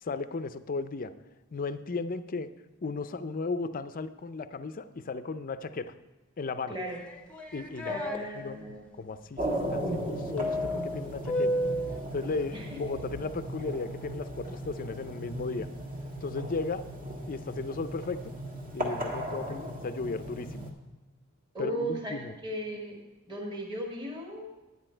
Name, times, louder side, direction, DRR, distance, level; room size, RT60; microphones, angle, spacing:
voice 1, 0.0-1.1 1.5-2.5 2.8-5.9 6.4-6.7 7.5-8.0 8.4-11.6 12.1-15.7 16.2-16.9 17.3-18.4 18.7-20.7 21.6-22.3, left 3 dB, 40° left, 12 dB, 0.5 m, -35 dB
voice 2, 6.7-7.0 7.8-9.0 12.5-12.8 19.4-19.7 21.5-22.1 22.4-23.0 23.2-24.5, right 1 dB, 20° right, -2 dB, 1.7 m, -36 dB
sound 1, 6.9-8.2 10.4-12.0, equal, 5° left, 0.7 m, -31 dB
sound 2, 9.4-20.7, right 1 dB, 40° right, 1.5 m, -37 dB
9.9 x 9.6 x 4.4 m, 1.1 s
head